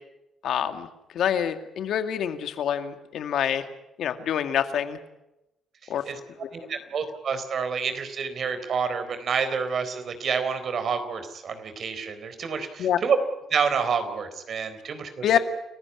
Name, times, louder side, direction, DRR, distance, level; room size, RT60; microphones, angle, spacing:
voice 1, 0.4-0.9 1.1-3.7 4.0-5.0 5.9-6.0 12.8-13.0 15.2-15.4, left 9 dB, 75° left, 8 dB, 2.2 m, -26 dB
voice 2, 6.5-13.2 13.5-15.4, right 6 dB, 55° right, 10 dB, 3.9 m, -28 dB
29.5 x 15.5 x 9.7 m, 0.92 s
cardioid pair, 90°, 0 cm